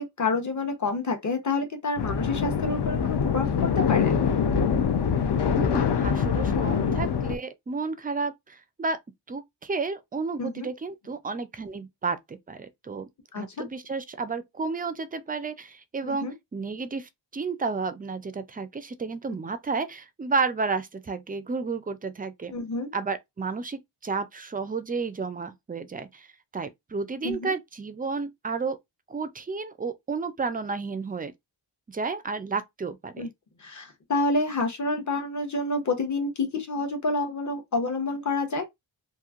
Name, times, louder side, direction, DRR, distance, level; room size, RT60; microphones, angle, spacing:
voice 1, 0.0-4.2 6.9-7.0 10.4-10.7 13.3-13.4 16.0-16.3 22.5-22.9 27.2-27.5 33.2-33.3 33.6-38.6, left 3 dB, 40° left, 0.9 m, -28 dB
sound 1, 2.0-7.4, left 7 dB, 60° left, 0.6 m, -24 dB
voice 2, 5.6-9.0 9.3-13.1 13.4-22.5 22.9-26.3 26.5-28.8 29.1-31.3 31.9-33.3, right 4 dB, 20° right, 0.3 m, -32 dB
3.0 x 2.5 x 2.4 m
wide cardioid pair, 115°, 46 cm